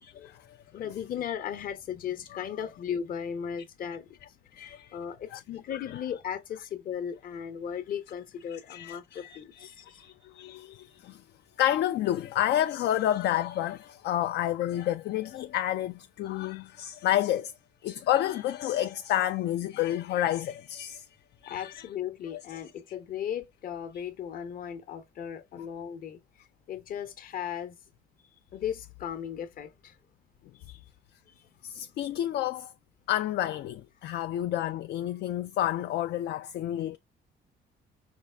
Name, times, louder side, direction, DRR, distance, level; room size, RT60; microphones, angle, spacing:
voice 1, 0.0-0.6 4.6-5.0 5.3-5.4 8.7-11.2 11.6-17.5 17.8-21.1 21.4-21.8 31.6-32.7 33.1-37.0, left 12 dB, 65° left, 0.4 m, -30 dB
voice 2, 0.7-4.1 4.5-10.0 21.5-26.2 26.7-27.8 28.5-30.0 30.5-30.8 31.3-31.5 34.0-34.3, left 8 dB, 50° left, 0.9 m, -37 dB
5.3 x 2.4 x 3.4 m
cardioid pair, 165°, 18 cm